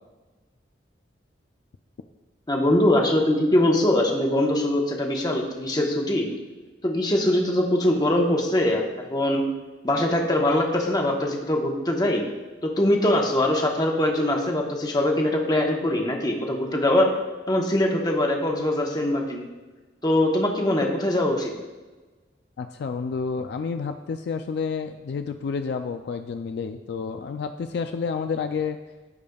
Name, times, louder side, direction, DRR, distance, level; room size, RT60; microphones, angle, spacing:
voice 1, 2.5-6.3 6.8-8.8 9.1-9.4 9.8-12.2 12.6-17.1 17.5-19.4 20.0-21.5, left 1 dB, 25° left, 1 dB, 1.0 m, -22 dB
voice 2, 22.6-28.8, left 5 dB, 65° left, 7 dB, 0.3 m, -30 dB
14.5 x 5.1 x 2.3 m, 1.3 s
head